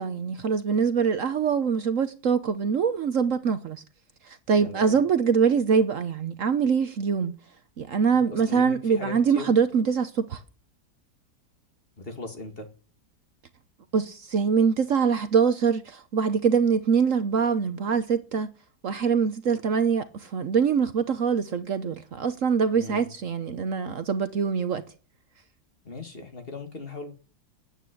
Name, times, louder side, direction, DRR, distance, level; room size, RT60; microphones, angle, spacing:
voice 1, 0.0-3.8 4.3-7.4 7.8-10.4 13.9-18.5 18.8-24.8, right 6 dB, 60° right, 1.1 m, -24 dB
voice 2, 4.6-5.0 8.3-9.5 12.0-12.7 22.7-23.1 25.8-27.1, left 2 dB, 35° left, 2.3 m, -38 dB
9.4 x 8.7 x 9.9 m
omnidirectional pair, 1.7 m